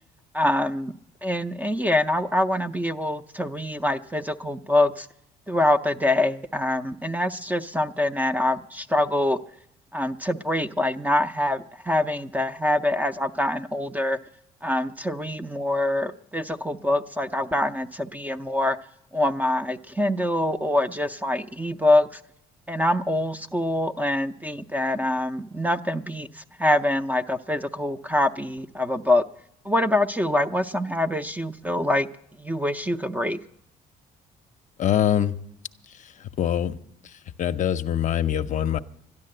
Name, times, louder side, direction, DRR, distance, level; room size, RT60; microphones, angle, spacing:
voice 1, 0.3-0.9 1.2-5.1 5.5-9.4 9.9-14.2 14.6-18.8 19.1-22.2 22.7-29.2 29.6-32.1 32.4-33.4, left 1 dB, 10° right, 9 dB, 0.5 m, -25 dB
voice 2, 34.8-35.3 36.4-36.8 37.4-38.8, left 10 dB, 45° left, 10 dB, 0.6 m, -23 dB
12.5 x 11.0 x 7.7 m, 0.77 s
cardioid pair, 110°, 17 cm